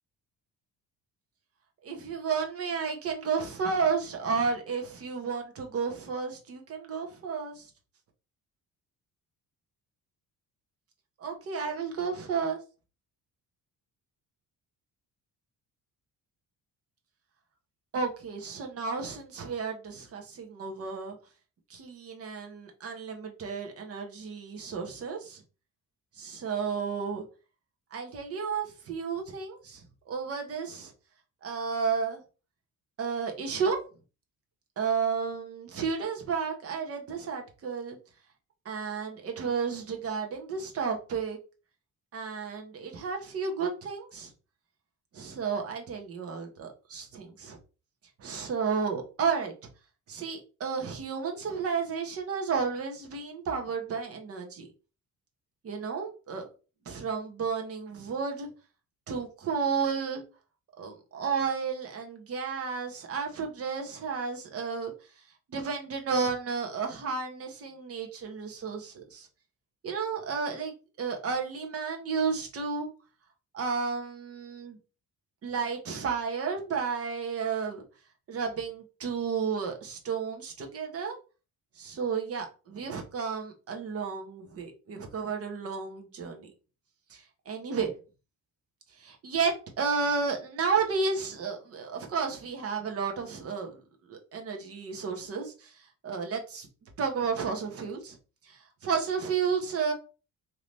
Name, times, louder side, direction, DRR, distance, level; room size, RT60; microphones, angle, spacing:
voice 1, 1.8-7.7 11.2-12.6 17.9-21.2 21.7-25.4 26.1-27.2 27.9-30.9 31.4-32.2 33.0-33.8 34.8-38.0 38.6-41.4 42.1-44.3 45.1-47.6 48.2-49.5 50.1-54.7 55.6-56.5 56.9-58.5 59.1-60.2 60.8-64.9 65.5-69.3 69.8-72.9 73.5-74.8 75.4-77.8 78.3-81.2 81.8-86.5 87.1-87.9 89.0-93.8 94.1-96.7 97.0-98.2 98.4-99.9, right 5 dB, 45° right, 0.9 m, -32 dB
3.3 x 2.9 x 3.9 m
cardioid pair, 175°, 34 cm